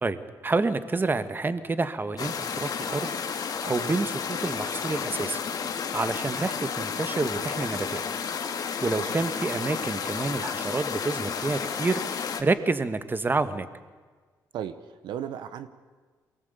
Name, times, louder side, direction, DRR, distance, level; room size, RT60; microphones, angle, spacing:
voice 1, 0.0-8.0 8.8-13.7, right 3 dB, 25° right, 11 dB, 1.5 m, -29 dB
sound 1, 2.2-12.4, left 6 dB, 60° left, 2.1 m, -32 dB
voice 2, 14.5-15.7, right 10 dB, 80° right, 11 dB, 1.1 m, -36 dB
23.0 x 19.0 x 8.3 m, 1.5 s
cardioid pair, 75°, 8 cm